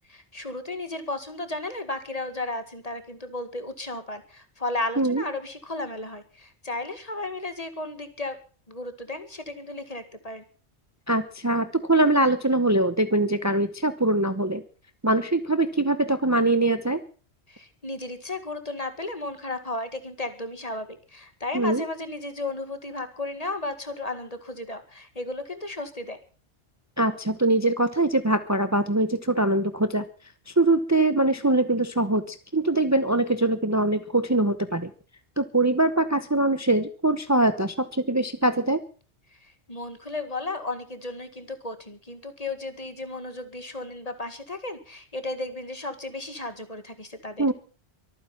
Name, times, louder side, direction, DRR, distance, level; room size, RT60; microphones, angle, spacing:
voice 1, 0.1-8.4 8.7-10.4 17.5-26.2 39.4-47.5, left 2 dB, 35° left, 9 dB, 2.1 m, -34 dB
voice 2, 11.1-14.6 15.0-17.0 21.5-21.8 27.0-30.0 30.5-34.9 35.4-38.8 47.4-47.5, right 2 dB, 15° right, 11 dB, 0.9 m, -23 dB
23.5 x 9.6 x 5.8 m, 0.39 s
omnidirectional pair, 1.1 m